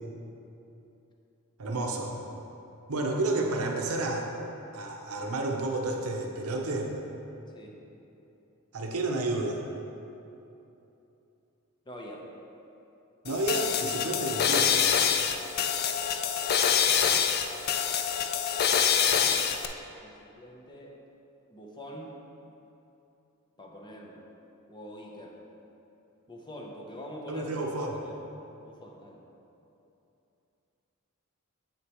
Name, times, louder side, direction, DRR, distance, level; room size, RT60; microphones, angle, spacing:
voice 1, 1.6-2.2 2.9-4.3 4.7-6.9 8.7-9.6 13.2-14.8 27.3-28.0, right 2 dB, 80° right, 1 dB, 0.8 m, -30 dB
voice 2, 11.9-12.3 19.0-19.5 20.0-21.0 21.5-22.2 23.6-24.2 24.7-25.4 26.3-27.5 28.0-28.2 28.6-29.2, equal, 20° left, -1 dB, 0.7 m, -45 dB
sound 1, 13.2-19.6, left 8 dB, 45° left, 0.3 m, -26 dB
8.0 x 6.6 x 3.0 m, 2.9 s
head